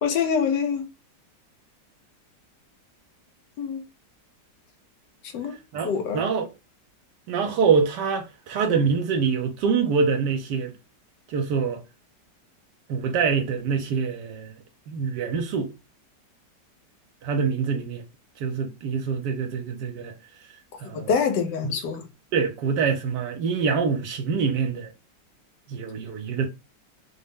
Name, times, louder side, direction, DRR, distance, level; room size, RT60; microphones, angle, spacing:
voice 1, 0.0-0.9 3.6-3.8 5.3-6.2 20.8-22.1, left 6 dB, 80° left, 1.4 m, -25 dB
voice 2, 5.7-6.5 7.3-10.7 11.3-11.8 12.9-14.5 14.9-15.7 17.2-18.0 18.4-20.1 20.8-21.1 21.6-21.7 22.3-24.9 25.7-26.5, right 5 dB, 80° right, 1.2 m, -25 dB
3.9 x 2.1 x 3.5 m
omnidirectional pair, 1.9 m